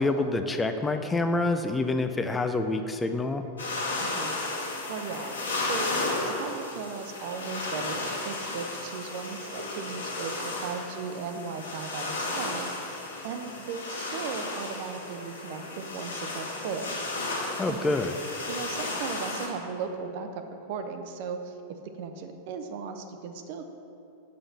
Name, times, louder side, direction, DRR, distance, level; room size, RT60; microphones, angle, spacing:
voice 1, 0.0-3.4 17.6-18.1, left 2 dB, 10° left, 7 dB, 0.4 m, -27 dB
sound 1, 3.6-19.5, left 2 dB, 70° left, 1.4 m, -34 dB
voice 2, 4.0-4.4 4.9-5.3 5.6-5.9 6.2-12.8 13.2-17.1 17.7-17.8 18.5-20.4 20.7-21.6 21.9-23.7, right 5 dB, 50° right, 7 dB, 0.7 m, -37 dB
7.1 x 5.1 x 7.0 m, 2.7 s
figure-of-eight pair, 90°, 0 cm